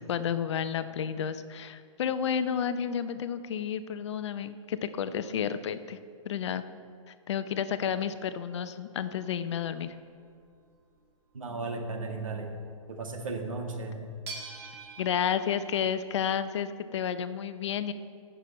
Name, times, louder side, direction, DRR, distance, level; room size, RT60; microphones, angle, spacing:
voice 1, 0.1-6.0 6.2-6.6 7.1-9.9 15.0-17.9, left 8 dB, 55° left, 12 dB, 0.6 m, -31 dB
sound 1, 9.0-10.6 13.4-13.5 14.3-15.9, right 4 dB, 50° right, 2.7 m, -44 dB
voice 2, 11.3-12.5 12.9-14.0, right 3 dB, 75° right, 2 dB, 1.8 m, -35 dB
16.5 x 6.9 x 4.3 m, 2.4 s
hypercardioid pair, 125°, 17 cm